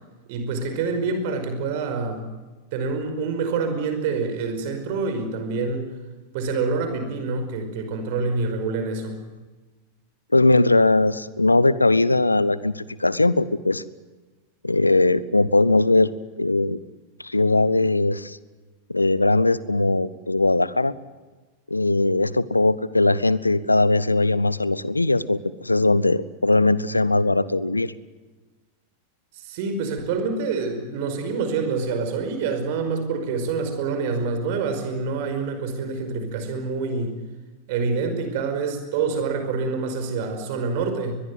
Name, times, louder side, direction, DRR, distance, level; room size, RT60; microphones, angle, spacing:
voice 1, 0.3-2.2 2.7-5.9 6.3-9.2 29.5-37.1 37.7-41.1, right 4 dB, 50° right, 7 dB, 5.2 m, -26 dB
voice 2, 10.3-13.8 14.6-16.1 16.4-16.8 17.2-18.4 18.9-20.9 21.7-27.9, left 2 dB, 85° left, 19 dB, 0.9 m, -20 dB
22.5 x 21.5 x 9.4 m, 1.3 s
figure-of-eight pair, 90°, 0 cm